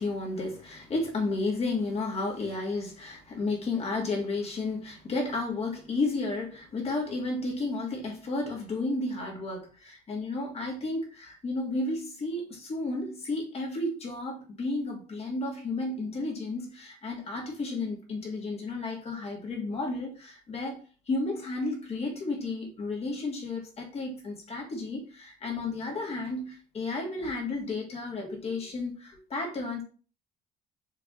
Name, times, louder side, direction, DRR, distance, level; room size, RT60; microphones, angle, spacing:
voice 1, 0.0-29.8, left 2 dB, 40° left, 1.5 m, -32 dB
4.7 x 3.4 x 2.4 m
cardioid pair, 110°, 17 cm